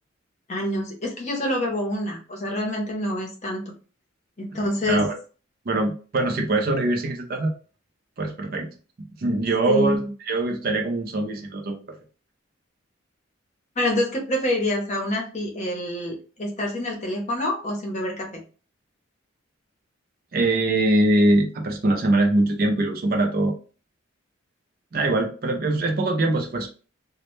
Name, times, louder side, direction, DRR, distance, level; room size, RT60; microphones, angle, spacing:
voice 1, 0.5-3.6 4.4-5.0 9.7-10.1 13.8-18.4, left 1 dB, 35° left, 0 dB, 0.6 m, -26 dB
voice 2, 5.7-7.5 8.2-8.7 9.2-11.8 20.3-23.5 24.9-26.7, right 2 dB, 45° right, 3 dB, 0.4 m, -22 dB
2.1 x 2.1 x 2.9 m, 0.36 s
head